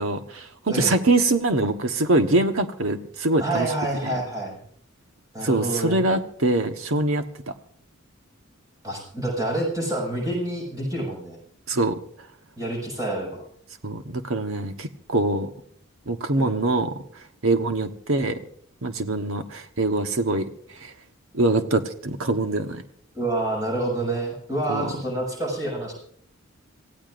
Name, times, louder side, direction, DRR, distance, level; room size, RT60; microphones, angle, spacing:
voice 1, 0.0-3.7 4.0-4.1 5.4-7.2 11.7-12.0 13.8-15.5 16.1-16.9 17.4-18.4 18.8-20.5 20.8-20.9 21.3-22.8 24.7-24.9, right 2 dB, 80° right, 7 dB, 1.2 m, -23 dB
voice 2, 3.4-4.5 5.3-6.0 8.8-11.4 12.6-13.4 16.4-16.6 23.1-25.9, right 1 dB, 15° right, -2 dB, 6.7 m, -28 dB
27.0 x 16.0 x 2.6 m, 0.64 s
head